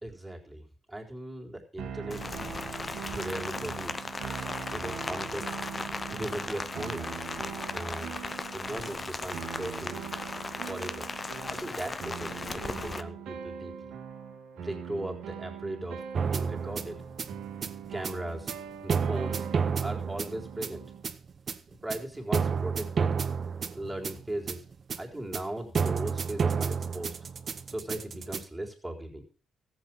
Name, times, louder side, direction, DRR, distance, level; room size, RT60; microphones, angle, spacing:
voice 1, 0.0-2.2 3.0-4.1 4.7-5.4 6.1-7.1 7.7-8.2 8.5-10.0 10.7-11.1 11.5-13.7 14.6-17.0 17.9-18.5 18.8-19.5 19.8-20.8 21.8-23.2 23.7-24.6 25.0-27.2 27.7-29.2, right 1 dB, 5° right, 0 dB, 3.9 m, -38 dB
sound 1, 1.8-21.0, right 8 dB, 80° right, 1.7 m, -42 dB
Rain, 2.1-13.0, left 3 dB, 30° left, 0.9 m, -37 dB
sound 2, 16.1-28.4, right 6 dB, 45° right, 1.0 m, -30 dB
14.5 x 8.0 x 6.0 m, 0.38 s
cardioid pair, 90°, 0 cm